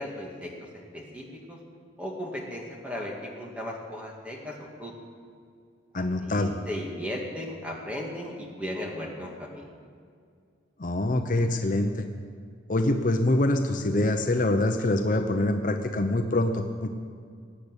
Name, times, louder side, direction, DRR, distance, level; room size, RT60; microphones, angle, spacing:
voice 1, 0.0-1.6 2.0-4.9 5.9-9.7, left 1 dB, 5° right, -1 dB, 2.1 m, -36 dB
voice 2, 5.9-6.5 10.8-12.0 12.7-16.9, left 1 dB, 45° left, 5 dB, 0.7 m, -25 dB
19.0 x 8.5 x 8.2 m, 2.2 s
head